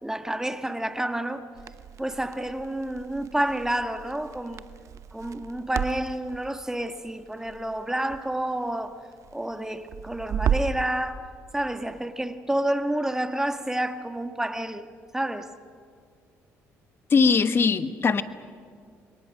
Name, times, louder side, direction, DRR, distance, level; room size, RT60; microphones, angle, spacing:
voice 1, 0.0-1.5 2.0-4.7 5.1-8.9 9.3-11.3 11.5-14.9 15.1-15.5, right 1 dB, 10° right, 1.4 m, -29 dB
Crackle, 1.6-10.9, right 7 dB, 60° right, 0.8 m, -34 dB
voice 2, 17.1-18.2, left 5 dB, 40° left, 1.2 m, -20 dB
28.0 x 22.0 x 6.4 m
supercardioid pair, 75°, 6 cm